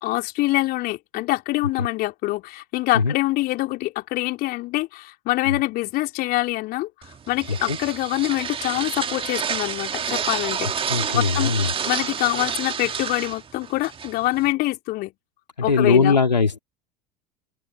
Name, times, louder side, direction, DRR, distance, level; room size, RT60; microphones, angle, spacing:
voice 1, 0.0-10.9 11.1-11.5 11.9-15.1 15.6-16.2, left 19 dB, 45° left, 3.8 m, -25 dB
sound 1, 7.0-14.5, right 7 dB, 25° right, 2.3 m, -29 dB
voice 2, 10.9-11.7 15.6-16.6, left 4 dB, 85° left, 2.5 m, -20 dB
open air
figure-of-eight pair, 75°, 21 cm